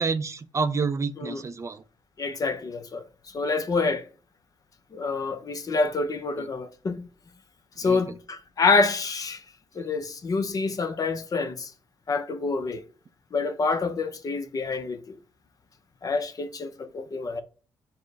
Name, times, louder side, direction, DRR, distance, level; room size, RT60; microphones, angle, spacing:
voice 1, 0.0-1.8 6.4-6.5 7.8-8.0, right 4 dB, 35° right, 0.4 m, -28 dB
voice 2, 2.2-3.1 3.3-4.0 4.9-7.1 7.8-9.4 9.8-11.7 12.1-12.8 13.3-15.2 16.0-17.4, left 4 dB, 40° left, 0.6 m, -27 dB
4.4 x 2.1 x 4.5 m
cardioid pair, 70°, 9 cm